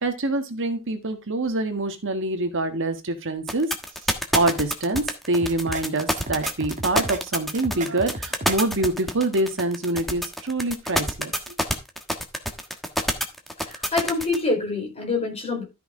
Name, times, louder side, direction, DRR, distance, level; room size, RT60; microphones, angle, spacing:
voice 1, 0.0-3.7 4.3-11.3, right 2 dB, 60° right, 1.6 m, -25 dB
sound 1, 3.5-14.4, equal, ahead, 1.3 m, -26 dB
sound 2, 5.4-5.8 6.2-7.2 7.5-8.6, right 2 dB, 35° right, 1.5 m, -34 dB
voice 2, 13.6-15.6, left 3 dB, 30° left, 4.4 m, -26 dB
13.0 x 5.8 x 3.7 m
head